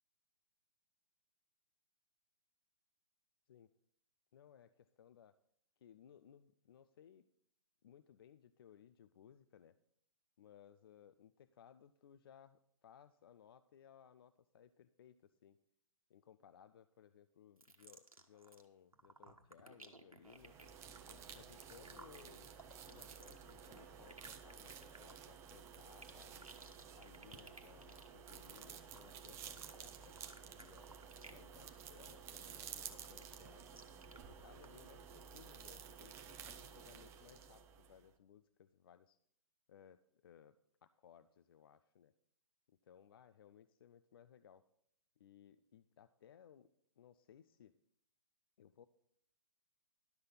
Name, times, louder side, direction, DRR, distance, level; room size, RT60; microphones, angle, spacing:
voice 1, 4.3-5.3 5.8-7.2 7.8-9.8 10.4-15.6 16.1-20.5 21.1-22.5 22.9-26.5 26.9-30.9 31.2-33.6 34.1-39.2 39.7-40.5 40.8-42.1 42.9-44.6 45.2-46.7 47.0-47.7 48.6-48.9, left 9 dB, 45° left, 13 dB, 0.4 m, -63 dB
sound 1, 17.6-18.7 18.9-31.5 31.8-32.1 32.5-34.2 34.6-34.7, right 2 dB, 85° right, 1.4 m, -59 dB
sound 2, 20.3-38.1, right 7 dB, 15° right, 0.6 m, -53 dB
sound 3, 21.3-22.1 22.5-23.3 23.6-24.4 24.8-25.7 26.0-26.8 27.3-28.1 28.5-29.3 29.6-30.4, equal, 10° left, 1.3 m, -72 dB
11.5 x 6.4 x 5.5 m, 0.70 s
figure-of-eight pair, 120°, 18 cm